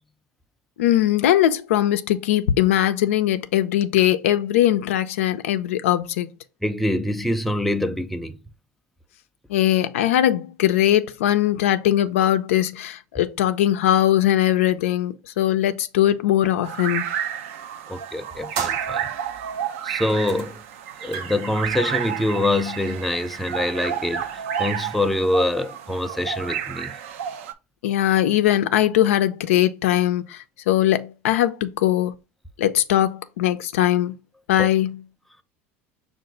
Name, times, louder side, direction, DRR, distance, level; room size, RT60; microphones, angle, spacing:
voice 1, 0.8-6.3 9.5-17.1 27.8-30.4 30.7-32.1 32.6-34.1 34.5-35.0, left 12 dB, 90° left, 0.5 m, -20 dB
voice 2, 6.6-8.4 17.9-19.1 19.8-20.6 21.0-27.0 34.6-34.7, left 1 dB, ahead, 0.4 m, -25 dB
sound 1, 16.6-27.5, right 8 dB, 85° right, 0.6 m, -31 dB
sound 2, 18.5-19.6 20.1-20.6 20.9-23.7, right 6 dB, 60° right, 0.9 m, -36 dB
5.5 x 2.5 x 3.8 m
supercardioid pair, 105°, 7 cm